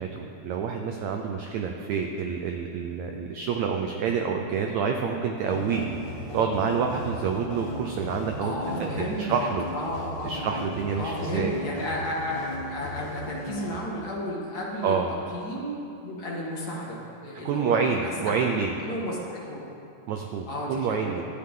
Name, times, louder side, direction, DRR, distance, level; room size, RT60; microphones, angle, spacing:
voice 1, 0.0-5.8 6.3-9.7 10.2-11.5 14.8-15.1 17.4-18.7 20.1-21.2, right 6 dB, 75° right, 3 dB, 1.7 m, -28 dB
sound 1, 5.4-13.7, left 1 dB, 60° left, 1.2 m, -36 dB
voice 2, 8.4-9.4 9.7-10.5 11.0-15.0 15.3-19.7 20.5-21.1, equal, 35° left, -4 dB, 1.9 m, -33 dB
24.5 x 8.4 x 3.8 m, 2.7 s
omnidirectional pair, 3.9 m